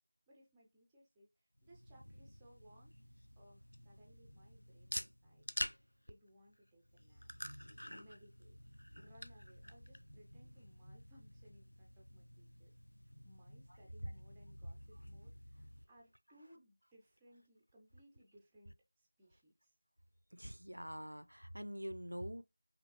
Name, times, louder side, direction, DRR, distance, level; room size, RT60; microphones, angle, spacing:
voice 1, 0.3-2.9 3.4-5.5 6.1-7.3 7.6-12.7 13.0-19.7, equal, 5° right, 0.5 m, -65 dB
sound 1, 1.6-15.8, equal, 70° left, 0.5 m, -49 dB
voice 2, 20.3-22.4, equal, 75° right, 0.5 m, -44 dB
5.1 x 3.0 x 2.9 m
figure-of-eight pair, 170°, 0 cm